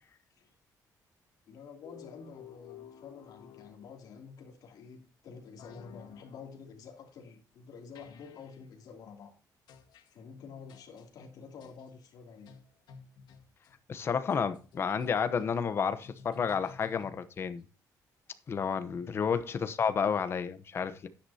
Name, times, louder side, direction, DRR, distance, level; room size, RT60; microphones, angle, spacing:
voice 1, 1.5-9.4 10.1-12.5 19.0-19.3, left 5 dB, 65° left, 2.8 m, -49 dB
sound 1, 1.8-4.2 5.6-6.5 8.0-8.6 9.7-10.1 10.7-11.1 11.6-11.9 12.5-17.5, left 7 dB, 85° left, 1.6 m, -53 dB
voice 2, 13.9-17.6 18.5-21.1, left 6 dB, 35° left, 0.9 m, -31 dB
11.5 x 9.8 x 2.8 m
cardioid pair, 175°, 7 cm